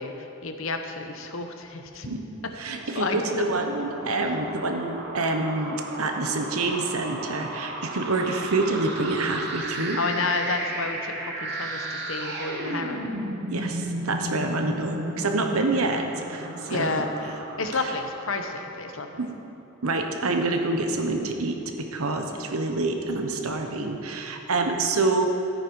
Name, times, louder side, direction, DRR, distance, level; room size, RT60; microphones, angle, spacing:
voice 1, 0.0-2.1 2.9-3.2 9.9-13.1 16.7-17.1 17.6-19.2, left 3 dB, 65° left, 5 dB, 0.9 m, -30 dB
sound 1, 2.6-19.0, right 1 dB, 50° right, 1.4 m, -34 dB
voice 2, 2.6-10.0 13.5-17.3 17.8-17.9 19.2-19.3 19.8-25.3, right 3 dB, 90° right, 4 dB, 1.1 m, -27 dB
14.0 x 8.9 x 4.7 m, 2.9 s
head